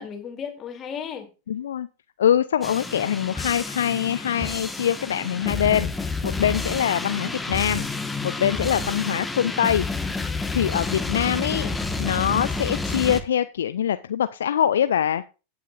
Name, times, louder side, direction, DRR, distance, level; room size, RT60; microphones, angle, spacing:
voice 1, 0.0-1.3 8.5-8.9 11.5-12.0, left 7 dB, 25° left, 2.7 m, -36 dB
voice 2, 1.5-1.9 2.2-9.9 10.5-11.7 12.0-15.2, left 9 dB, 65° left, 0.5 m, -24 dB
sound 1, 2.6-13.2, left 3 dB, 10° left, 1.4 m, -29 dB
17.0 x 8.5 x 2.5 m
figure-of-eight pair, 90°, 0 cm